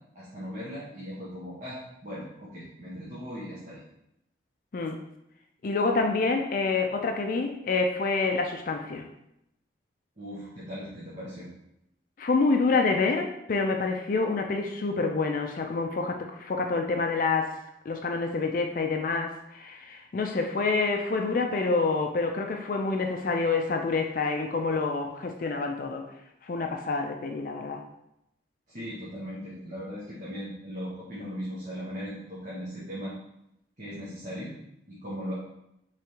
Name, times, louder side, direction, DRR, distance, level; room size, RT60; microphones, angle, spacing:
voice 1, 0.1-3.8 10.2-11.5 28.7-33.1 33.8-34.6 34.9-35.3, equal, 40° right, -8 dB, 1.0 m, -38 dB
voice 2, 5.6-9.0 12.2-17.5 17.9-26.0 26.4-27.8, left 3 dB, 45° left, 4 dB, 0.4 m, -27 dB
4.9 x 3.4 x 2.9 m, 0.81 s
head